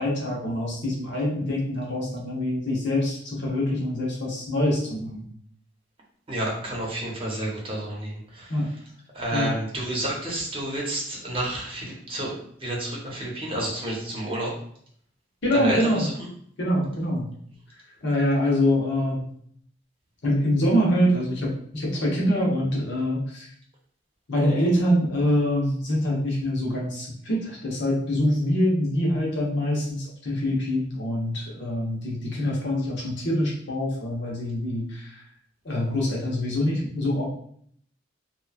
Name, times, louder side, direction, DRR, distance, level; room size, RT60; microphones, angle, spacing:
voice 1, 0.0-5.2 8.5-8.7 9.3-9.5 15.4-16.1 16.6-17.3 18.0-19.2 20.2-23.5 24.3-35.2 35.6-37.3, left 1 dB, 70° left, -3 dB, 0.9 m, -25 dB
voice 2, 6.3-8.5 9.1-12.3 12.6-14.5 15.5-16.1, right 1 dB, 30° right, -3 dB, 0.8 m, -30 dB
2.9 x 2.2 x 2.3 m, 0.63 s
head